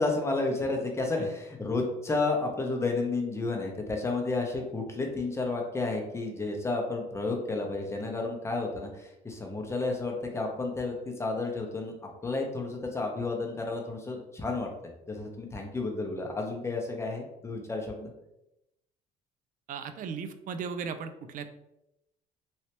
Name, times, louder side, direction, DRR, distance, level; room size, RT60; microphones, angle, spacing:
voice 1, 0.0-12.0 12.2-14.7 15.1-18.1, left 3 dB, 15° left, 1 dB, 0.7 m, -31 dB
voice 2, 19.7-21.5, right 6 dB, 55° right, 9 dB, 0.4 m, -36 dB
3.2 x 2.7 x 2.9 m, 0.87 s
cardioid pair, 110°, 17 cm